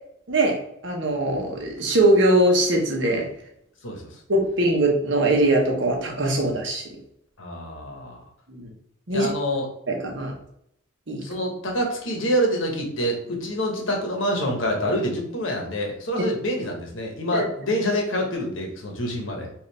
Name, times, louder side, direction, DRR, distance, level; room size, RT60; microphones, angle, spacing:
voice 1, 0.3-3.3 4.3-6.9 8.5-8.7 9.1-9.3 9.9-10.3 11.1-11.2 17.3-17.4, right 1 dB, 65° right, 0 dB, 1.1 m, -21 dB
voice 2, 3.8-4.2 7.4-8.2 9.1-9.7 11.2-19.5, equal, 75° left, 1 dB, 1.2 m, -26 dB
4.8 x 2.6 x 3.3 m, 0.73 s
head